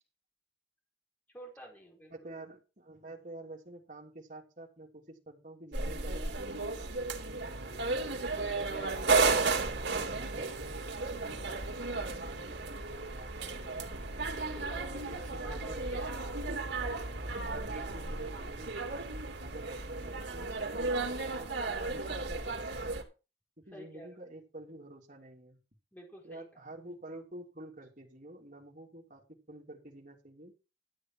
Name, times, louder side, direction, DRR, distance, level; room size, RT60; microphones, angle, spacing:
voice 1, 1.3-2.3 8.2-9.0 14.3-16.3 23.7-24.2 25.9-26.6, right 1 dB, 10° left, 1 dB, 4.2 m, -51 dB
voice 2, 2.1-8.1 8.7-14.1 14.8-16.0 17.1-22.9 23.6-25.6 26.2-29.2 29.5-30.5, right 2 dB, 45° right, 0 dB, 3.2 m, -49 dB
sound 1, 5.7-23.0, right 3 dB, 90° right, 2.9 m, -34 dB
13.0 x 8.6 x 4.7 m, 0.30 s
head